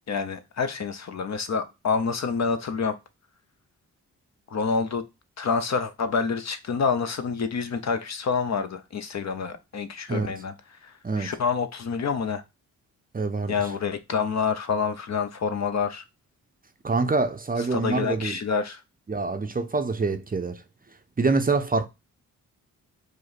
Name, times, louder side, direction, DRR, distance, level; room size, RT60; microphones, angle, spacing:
voice 1, 0.1-3.0 4.5-5.0 5.4-10.5 10.8-12.4 13.5-16.0 17.7-18.8, left 5 dB, 45° left, 0.7 m, -27 dB
voice 2, 13.1-13.5 16.8-18.4 19.1-20.6 21.2-21.9, right 3 dB, 25° right, 0.6 m, -25 dB
5.0 x 2.0 x 4.1 m
supercardioid pair, 40°, 36 cm